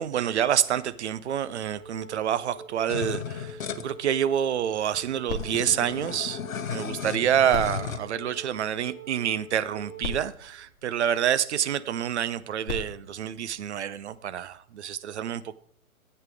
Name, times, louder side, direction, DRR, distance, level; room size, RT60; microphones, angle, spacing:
voice 1, 0.0-6.4 6.7-15.5, right 9 dB, 50° right, 0.8 m, -27 dB
Wind instrument woodwind instrument, 1.7-10.1, right 1 dB, 20° right, 2.8 m, -45 dB
sound 1, 2.9-3.9 4.6-4.7 4.8-8.0, left 8 dB, 65° left, 1.1 m, -35 dB
sound 2, 5.3-6.9 7.4-9.1 9.7-9.8 10.0-11.6 12.4-14.2 14.9-15.0, left 3 dB, 40° left, 2.2 m, -40 dB
13.5 x 8.2 x 3.7 m
figure-of-eight pair, 125°, 43 cm